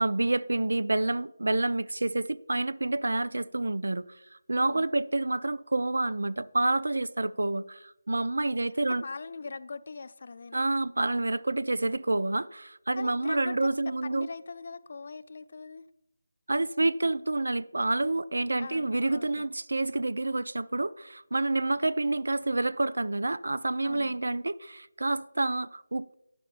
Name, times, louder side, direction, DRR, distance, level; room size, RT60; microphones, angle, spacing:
voice 1, 0.0-9.0 10.5-14.3 16.5-26.2, right 2 dB, 75° right, 0.3 m, -28 dB
voice 2, 4.6-4.9 8.6-10.6 13.0-13.7 14.0-15.8 18.6-19.5 23.8-24.2, left 4 dB, 45° left, 0.4 m, -42 dB
12.0 x 10.0 x 2.5 m
figure-of-eight pair, 170°, 0 cm